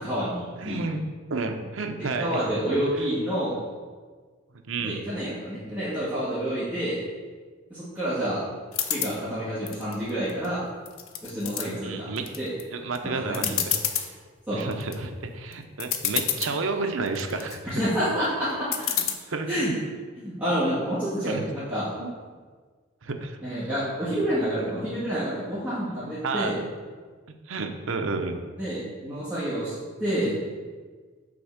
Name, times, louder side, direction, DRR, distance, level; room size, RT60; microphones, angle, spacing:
voice 1, 0.0-0.8 2.0-3.6 4.8-7.0 7.7-8.4 8.9-10.6 11.2-12.1 12.4-12.5 13.0-13.6 14.5-14.6 17.7-18.7 19.5-19.7 20.2-21.9 23.4-26.6 28.6-29.7 30.0-30.4, equal, 5° right, -14 dB, 2.2 m, -28 dB
voice 2, 0.6-1.0 1.3-2.4 3.0-3.1 4.7-5.0 11.8-12.3 12.7-13.6 14.0-14.1 14.5-17.6 18.9-19.6 21.3-21.4 22.0-22.1 23.0-23.4 24.1-24.2 25.9-26.0 26.2-26.6 27.5-28.4, right 3 dB, 70° right, 5 dB, 0.7 m, -31 dB
sound 1, 8.7-9.1 9.7-10.5 10.9-11.7 12.2-12.6 13.0-13.1 13.3-14.1 14.6-15.0 15.5-15.6 15.8-16.5 17.1-17.6 18.7-19.1, left 9 dB, 85° left, 0.7 m, -28 dB
6.0 x 4.4 x 6.4 m, 1.5 s
head